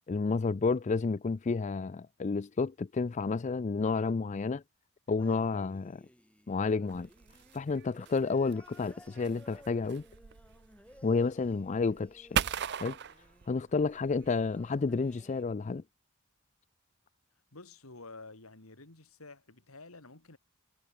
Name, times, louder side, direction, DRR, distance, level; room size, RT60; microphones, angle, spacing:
voice 1, 0.1-4.6 5.1-6.0 6.5-7.1 7.5-10.0 11.0-12.4 12.8-13.0 13.5-15.8, left 4 dB, 35° left, 0.4 m, -30 dB
sound 1, 5.2-15.4, equal, 5° left, 5.2 m, -58 dB
sound 2, 6.9-15.2, right 8 dB, 50° right, 0.6 m, -40 dB
voice 2, 17.5-20.4, left 3 dB, 80° left, 2.8 m, -50 dB
head